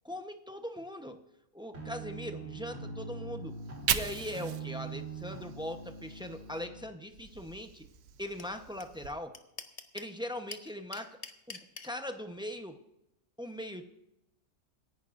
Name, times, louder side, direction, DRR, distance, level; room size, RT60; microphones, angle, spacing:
voice 1, 0.0-1.2 1.5-3.5 3.9-7.8 8.2-9.3 9.9-11.2 11.5-11.6 11.8-12.8 13.4-13.8, left 1 dB, 5° right, 6 dB, 0.6 m, -40 dB
sound 1, 1.7-6.9, right 4 dB, 45° right, 1.9 m, -43 dB
Fire, 3.5-6.7 7.0-9.1, right 9 dB, 85° right, 1.3 m, -39 dB
sound 2, 8.4-8.5 8.8-8.9 9.1-10.1 10.5-11.9, left 4 dB, 30° left, 0.8 m, -43 dB
27.0 x 11.0 x 2.6 m, 0.88 s
omnidirectional pair, 1.6 m